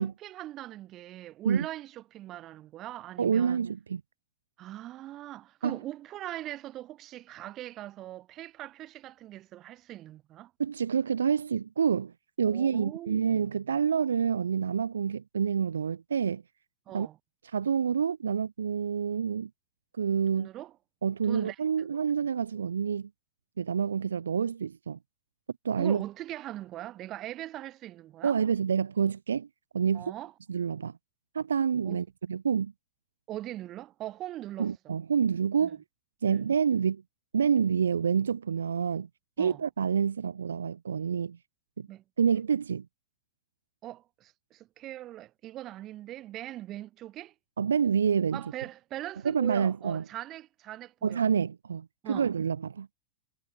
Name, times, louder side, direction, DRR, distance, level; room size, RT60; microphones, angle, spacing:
voice 1, 0.0-3.6 4.6-10.5 12.4-13.4 16.9-17.2 20.3-20.7 21.3-21.9 25.8-28.4 29.9-30.3 31.8-32.0 33.3-34.7 35.6-35.7 36.3-36.5 39.4-39.6 41.9-42.0 43.8-47.3 48.3-51.3 52.0-52.3, right 14 dB, 35° right, 5.4 m, -41 dB
voice 2, 3.2-4.0 5.6-5.8 10.6-16.4 16.9-17.1 17.4-19.5 20.0-20.5 21.0-23.1 23.6-25.0 25.6-26.0 28.2-29.5 29.7-30.1 30.5-30.9 31.3-32.7 34.6-35.8 36.2-37.0 37.3-39.1 39.4-41.4 41.8-41.9 42.2-42.9 47.6-48.4 49.2-50.0 51.0-52.9, right 7 dB, 70° right, 1.2 m, -28 dB
figure-of-eight pair, 90°, 0 cm